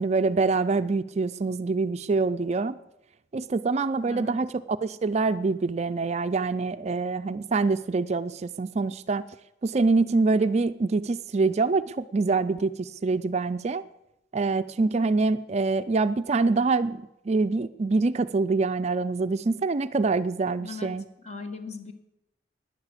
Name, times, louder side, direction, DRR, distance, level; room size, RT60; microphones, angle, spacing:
voice 1, 0.0-2.7 3.3-9.3 9.6-13.8 14.3-21.0, right 3 dB, 35° right, 12 dB, 0.4 m, -25 dB
voice 2, 4.0-4.3 20.6-20.9 21.2-21.9, left 4 dB, 35° left, 6 dB, 1.5 m, -38 dB
12.0 x 9.8 x 8.1 m, 0.88 s
head